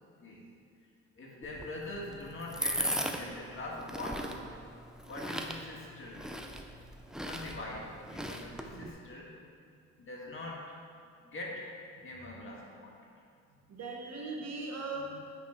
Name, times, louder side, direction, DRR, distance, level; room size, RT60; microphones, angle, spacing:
voice 1, 1.1-4.5 5.0-6.3 7.2-9.3 10.0-10.8 11.2-11.7 12.0-13.1, left 2 dB, 40° left, -3 dB, 1.7 m, -43 dB
sound 1, 1.4-8.9, equal, ahead, 0.4 m, -38 dB
voice 2, 13.5-15.3, right 3 dB, 55° right, -1 dB, 1.3 m, -40 dB
9.2 x 3.8 x 4.5 m, 2.3 s
cardioid pair, 90°, 30 cm